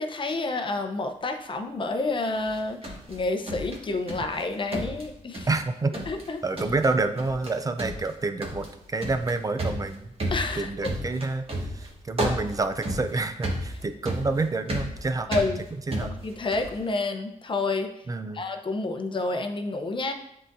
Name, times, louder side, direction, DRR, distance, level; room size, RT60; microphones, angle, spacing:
voice 1, 0.0-5.5 6.1-6.4 10.3-10.9 15.3-15.6 16.2-17.9 18.3-20.1, left 3 dB, 40° left, 5 dB, 0.7 m, -29 dB
sound 1, 2.4-4.4 4.7-5.7 5.9-6.3 6.6-6.9 7.2-7.5 7.8-16.8, right 1 dB, 45° right, 1.5 m, -33 dB
voice 2, 5.5-6.0 6.4-8.7 8.9-10.1 10.5-11.5 11.7-15.3 15.7-16.1 18.1-18.4, right 3 dB, 25° right, 9 dB, 0.5 m, -28 dB
9.9 x 3.9 x 2.6 m, 0.79 s
cardioid pair, 105°, 13 cm